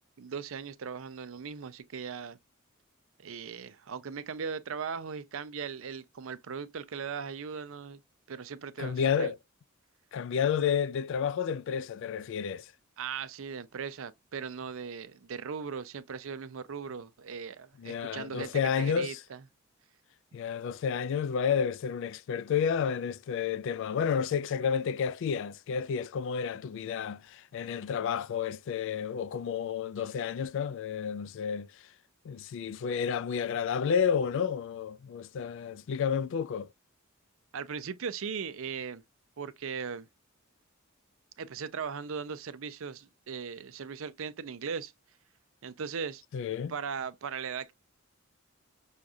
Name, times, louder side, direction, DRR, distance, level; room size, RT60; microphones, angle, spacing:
voice 1, 0.2-2.4 3.2-8.0 8.3-9.3 13.0-18.5 18.8-19.4 37.5-39.0 39.4-40.1 41.4-44.9 45.6-46.2 46.7-47.7, right 6 dB, 65° right, 0.5 m, -38 dB
voice 2, 8.8-9.4 10.1-12.7 17.8-19.2 20.3-31.8 32.2-36.7 46.3-46.7, left 7 dB, 60° left, 0.3 m, -31 dB
6.3 x 2.4 x 2.6 m
head